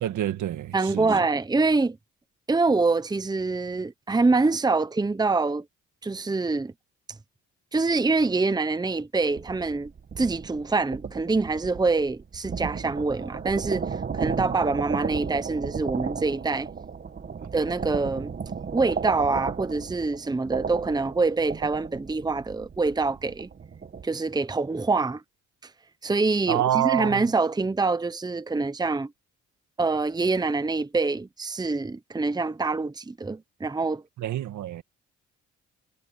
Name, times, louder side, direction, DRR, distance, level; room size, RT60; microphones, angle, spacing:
voice 1, 0.0-1.1 26.5-27.2 34.2-34.8, right 12 dB, 75° right, 1.9 m, -27 dB
voice 2, 0.7-2.0 2.5-5.6 6.0-6.7 7.7-9.9 10.2-13.9 14.1-16.7 17.5-18.3 18.7-23.5 24.0-25.2 26.0-29.1 29.8-34.0, right 3 dB, 15° right, 0.9 m, -25 dB
sound 1, 9.2-24.1, right 6 dB, 35° right, 1.3 m, -34 dB
cardioid pair, 90°, 30 cm